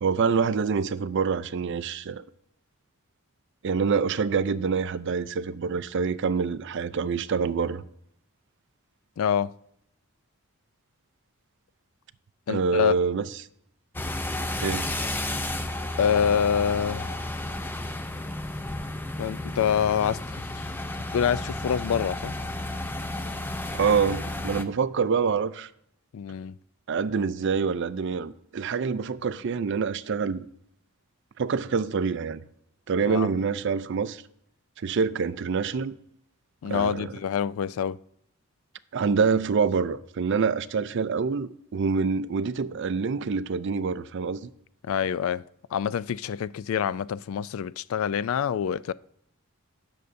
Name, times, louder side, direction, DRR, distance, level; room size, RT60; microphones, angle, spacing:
voice 1, 0.0-2.2 3.6-7.8 12.5-13.3 14.6-14.9 23.7-25.7 26.9-30.5 31.4-32.4 32.9-34.2 34.8-35.9 36.7-37.1 38.9-44.5, right 5 dB, 55° right, 0.4 m, -26 dB
voice 2, 9.2-9.5 12.5-12.9 16.0-17.2 19.2-20.7 21.1-22.3 26.1-26.5 33.1-33.3 36.6-38.0 44.8-45.4 45.7-48.9, left 8 dB, 70° left, 0.3 m, -26 dB
sound 1, 13.9-24.6, left 1 dB, 10° left, 0.5 m, -32 dB
17.5 x 6.6 x 2.6 m
head